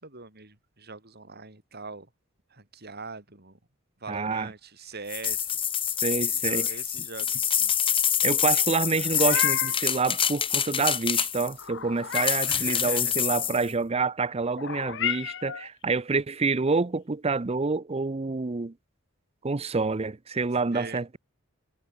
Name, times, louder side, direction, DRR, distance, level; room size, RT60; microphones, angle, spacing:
voice 1, 0.0-2.1 2.5-3.6 4.0-5.5 6.3-7.7 12.4-13.1 20.7-21.0, right 4 dB, 50° right, 4.7 m, -42 dB
voice 2, 4.1-4.5 6.0-6.7 8.2-18.7 19.4-21.2, right 4 dB, 30° right, 0.6 m, -27 dB
sound 1, 5.1-11.6 12.1-13.6, left 8 dB, 25° left, 1.8 m, -26 dB
Meow, 8.9-9.9 11.6-12.5 14.6-15.7, left 9 dB, 60° left, 1.3 m, -32 dB
head